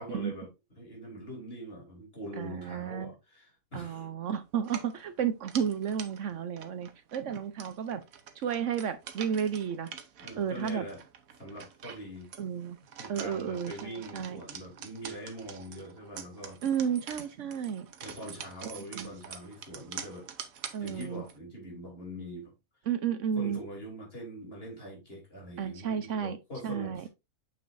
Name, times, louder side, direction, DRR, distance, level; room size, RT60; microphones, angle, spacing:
voice 1, 0.0-4.1 10.2-11.0 11.4-12.3 13.0-16.6 18.0-20.3 20.8-22.5 23.4-27.1, equal, 45° left, 3.4 m, -43 dB
voice 2, 2.4-3.1 3.7-8.0 8.4-9.9 10.4-10.8 12.4-12.8 13.1-14.4 16.6-17.9 18.7-19.1 20.7-21.2 22.9-23.6 25.6-26.4 26.6-27.0, right 8 dB, 65° right, 1.0 m, -32 dB
sound 1, 4.6-21.4, right 8 dB, 85° right, 1.3 m, -46 dB
7.0 x 6.2 x 2.6 m
omnidirectional pair, 1.4 m